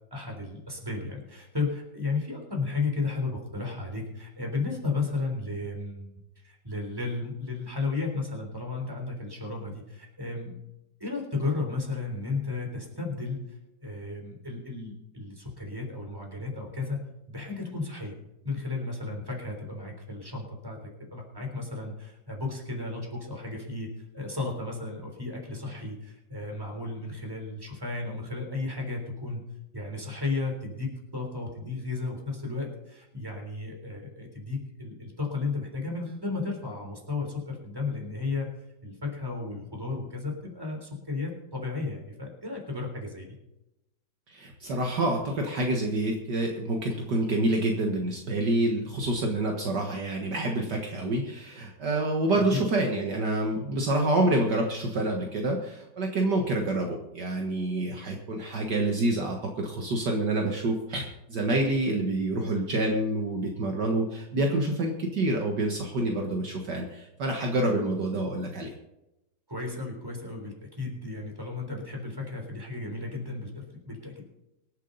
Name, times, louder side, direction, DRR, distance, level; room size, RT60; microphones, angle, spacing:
voice 1, 0.1-6.1 6.4-10.5 11.0-13.4 13.8-18.1 18.4-20.8 21.1-29.4 29.7-38.5 38.8-43.3 52.4-52.6 69.5-74.2, left 3 dB, 10° right, 1 dB, 3.6 m, -34 dB
voice 2, 44.3-68.7, right 2 dB, 60° right, 1 dB, 2.1 m, -27 dB
25.0 x 8.4 x 4.0 m, 0.92 s
omnidirectional pair, 2.1 m